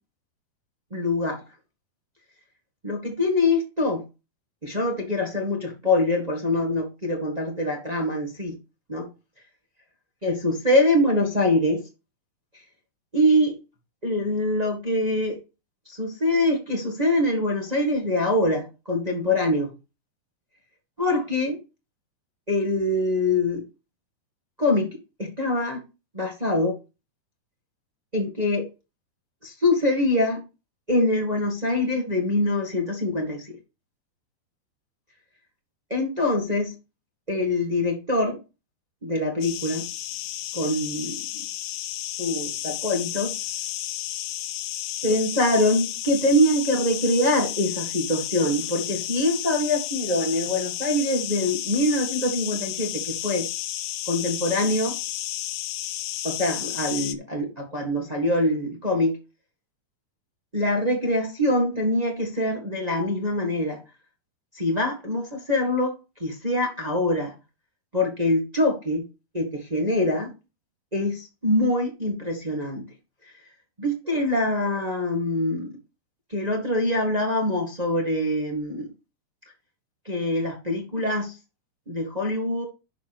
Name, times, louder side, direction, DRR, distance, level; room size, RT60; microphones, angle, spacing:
voice 1, 0.9-1.4 2.8-4.0 4.6-8.6 8.9-9.1 10.2-11.8 13.1-13.5 14.0-15.4 15.8-19.7 21.0-21.6 22.5-23.6 24.6-24.9 25.2-25.8 26.1-26.8 28.1-28.7 29.4-30.4 30.9-33.5 35.9-36.7 37.3-38.4 39.0-39.8 40.5-41.2 42.2-43.4 45.0-53.5 54.1-55.0 56.2-59.2 60.5-63.8 64.5-65.9 66.2-67.3 67.9-69.0 69.3-70.3 70.9-72.8 73.8-75.8 76.3-78.9 80.0-81.4 81.9-82.6, left 1 dB, 35° right, 0.6 m, -24 dB
sound 1, 39.4-57.2, left 13 dB, 80° left, 2.4 m, -32 dB
10.0 x 6.9 x 3.0 m
omnidirectional pair, 4.4 m